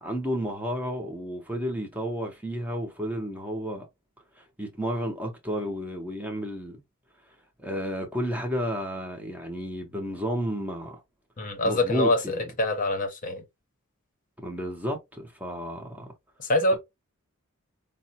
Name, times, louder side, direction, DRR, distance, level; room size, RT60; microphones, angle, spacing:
voice 1, 0.0-3.9 4.4-6.8 7.6-11.0 11.4-12.5 14.4-16.1, equal, 5° right, 0.7 m, -32 dB
voice 2, 11.4-13.4 16.4-16.8, left 1 dB, 40° left, 0.7 m, -25 dB
4.6 x 2.1 x 2.8 m
head